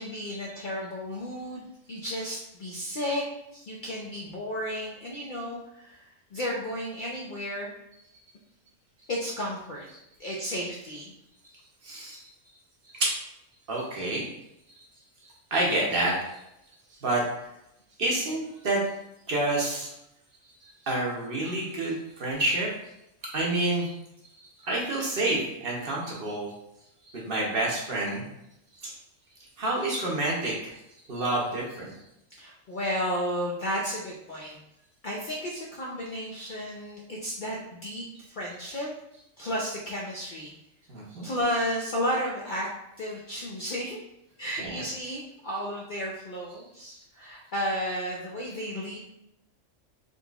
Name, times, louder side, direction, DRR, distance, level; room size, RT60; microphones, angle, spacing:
voice 1, 0.0-3.2 3.5-6.1 6.3-7.7 9.1-9.9 10.2-11.1 32.4-34.6 35.0-38.9 39.4-40.5 41.2-42.7 43.0-44.0 44.4-49.0, equal, 55° left, -3 dB, 0.5 m, -33 dB
voice 2, 11.8-12.2 12.9-13.1 13.7-14.2 14.7-14.8 15.5-16.1 17.0-17.2 18.0-18.8 19.3-19.9 20.8-22.7 23.3-23.9 24.6-26.5 27.1-28.2 28.8-28.9 29.6-30.7 31.1-31.9 40.9-41.2 44.6-44.8, right 2 dB, 55° right, -3 dB, 0.9 m, -28 dB
3.8 x 2.8 x 2.3 m, 0.83 s
omnidirectional pair, 1.3 m